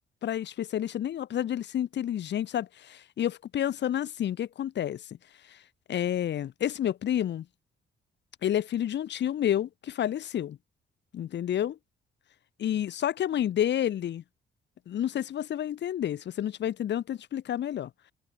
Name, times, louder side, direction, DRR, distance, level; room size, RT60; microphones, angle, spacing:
voice 1, 0.2-5.0 5.5-5.6 5.9-7.4 8.4-10.6 11.1-11.8 12.6-14.2 14.9-17.9, left 10 dB, 65° left, 1.4 m, -30 dB
cardioid pair, 90°, 20 cm